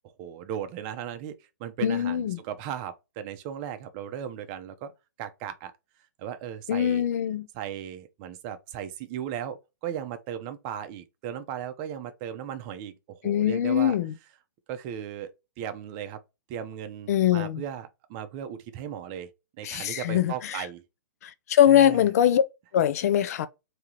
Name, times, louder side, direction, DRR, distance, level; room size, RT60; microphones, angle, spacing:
voice 1, 0.2-1.3 1.6-4.9 5.2-5.7 6.2-7.1 7.5-14.0 14.7-16.2 16.5-19.3 19.6-20.8 21.7-22.0, right 9 dB, 35° right, 0.7 m, -36 dB
voice 2, 1.8-2.4 6.7-7.5 13.2-14.1 17.1-17.6 19.6-20.6 21.2-22.4 22.7-23.5, left 10 dB, 50° left, 0.6 m, -22 dB
3.6 x 2.9 x 2.9 m
hypercardioid pair, 125°, 10 cm